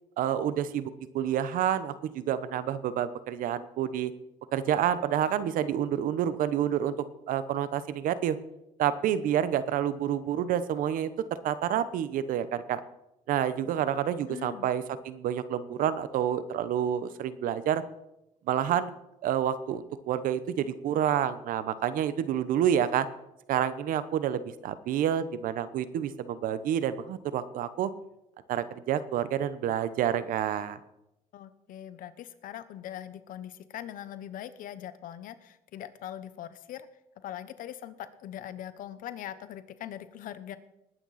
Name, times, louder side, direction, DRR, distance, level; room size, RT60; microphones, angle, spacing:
voice 1, 0.2-4.1 4.5-6.9 7.3-8.4 8.8-11.1 11.4-12.8 13.3-17.8 18.5-18.9 19.2-23.1 23.5-27.9 28.5-30.8, right 10 dB, 75° right, 14 dB, 0.9 m, -28 dB
voice 2, 14.3-14.7 31.3-36.9 37.2-40.6, left 11 dB, 75° left, 13 dB, 1.0 m, -41 dB
19.5 x 9.1 x 4.2 m, 0.87 s
cardioid pair, 95°, 14 cm